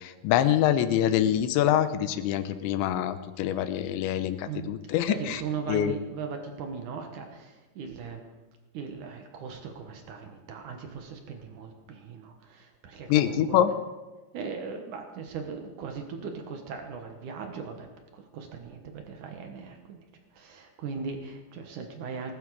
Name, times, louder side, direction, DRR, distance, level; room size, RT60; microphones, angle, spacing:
voice 1, 0.0-5.4 5.7-5.9 13.1-13.7, left 11 dB, 90° left, 11 dB, 3.1 m, -25 dB
voice 2, 4.4-4.8 5.1-8.2 8.7-13.6 14.3-20.1 20.3-22.3, right 5 dB, 65° right, 4 dB, 2.0 m, -38 dB
19.5 x 12.5 x 4.8 m, 1.2 s
omnidirectional pair, 5.2 m